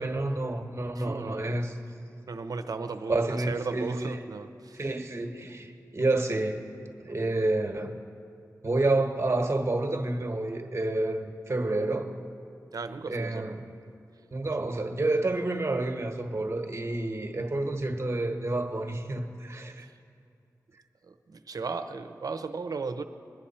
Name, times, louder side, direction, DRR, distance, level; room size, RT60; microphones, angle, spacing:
voice 1, 0.0-1.8 3.1-4.2 4.7-6.6 7.0-7.9 8.6-12.1 13.1-13.6 14.3-19.9, right 2 dB, 40° right, 5 dB, 1.4 m, -29 dB
voice 2, 1.0-1.7 2.3-4.8 12.7-13.8 14.6-14.8 19.8-19.9 21.0-23.0, right 4 dB, 65° right, 9 dB, 0.7 m, -36 dB
22.0 x 9.8 x 4.3 m, 2.5 s
cardioid pair, 50°, 7 cm